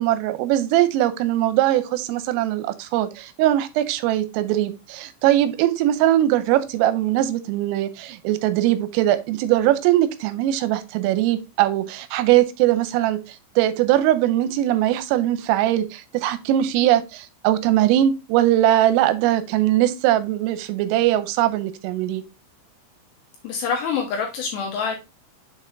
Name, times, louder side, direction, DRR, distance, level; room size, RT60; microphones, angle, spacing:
voice 1, 0.0-22.2, right 13 dB, 85° right, 3.2 m, -21 dB
voice 2, 23.4-25.0, left 6 dB, 75° left, 2.6 m, -26 dB
7.2 x 5.3 x 2.5 m
omnidirectional pair, 5.9 m